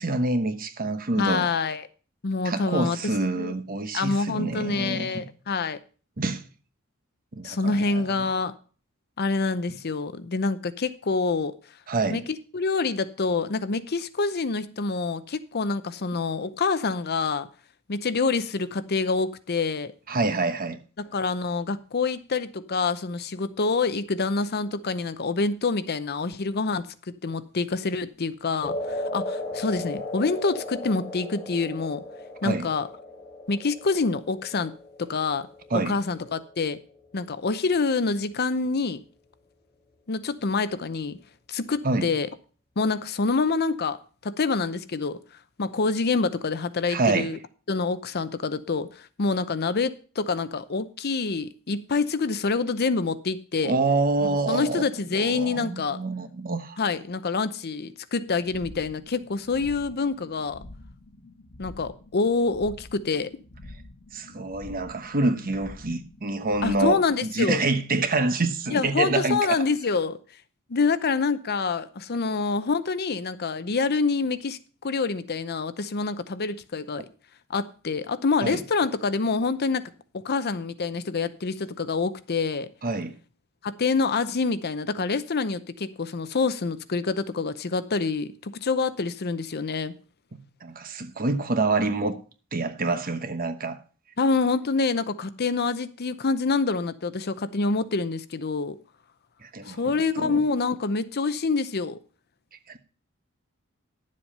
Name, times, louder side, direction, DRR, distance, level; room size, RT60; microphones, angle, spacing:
voice 1, 0.0-1.5 2.4-5.3 6.2-6.4 7.3-8.3 11.9-12.2 20.1-20.8 32.4-32.7 35.7-35.9 41.8-42.1 46.9-47.3 53.6-54.8 55.1-56.8 64.1-69.6 78.4-78.6 82.8-83.1 90.3-92.2 92.5-93.8 99.4-100.4 102.7-102.8, right 3 dB, 45° right, 1.1 m, -27 dB
voice 2, 1.2-1.9 2.2-3.0 3.3-3.5 3.9-5.8 7.4-8.5 9.2-11.6 12.1-17.5 17.9-19.9 21.1-32.0 32.4-32.9 33.5-34.7 35.0-35.5 35.8-36.8 37.1-39.0 40.1-41.2 41.5-42.3 42.8-44.0 44.2-45.2 45.6-47.4 47.7-53.8 54.5-56.0 56.8-60.6 61.6-63.3 66.6-67.6 68.7-70.2 70.7-77.1 77.5-82.7 83.6-89.9 94.2-98.8 99.7-102.0, left 4 dB, 50° left, 0.7 m, -26 dB
sound 1, 28.6-37.0, left 1 dB, 20° left, 2.9 m, -36 dB
sound 2, 58.3-67.3, left 1 dB, 70° left, 1.2 m, -47 dB
11.0 x 7.5 x 5.4 m
head